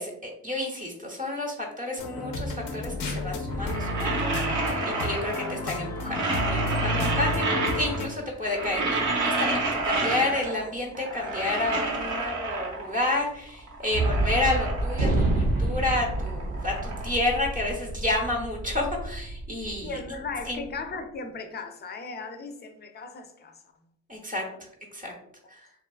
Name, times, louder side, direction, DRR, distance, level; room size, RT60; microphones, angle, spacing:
voice 1, 0.0-20.0 20.5-20.6 24.1-25.1 25.5-25.7, left 2 dB, 25° right, -2 dB, 0.7 m, -30 dB
sound 1, 2.0-8.1, left 1 dB, 90° left, 0.5 m, -31 dB
sound 2, 3.5-5.7 6.0-8.1 8.4-10.7 10.9-13.0 13.5-15.5 15.8-18.0, right 3 dB, 65° right, 0.7 m, -30 dB
Gunshot gunfire, 13.9-20.5, right 2 dB, 90° right, 1.1 m, -28 dB
voice 2, 19.8-23.9 24.4-24.6, left 4 dB, 30° left, 6 dB, 0.4 m, -37 dB
2.9 x 2.3 x 2.3 m, 0.75 s
cardioid pair, 85°, 32 cm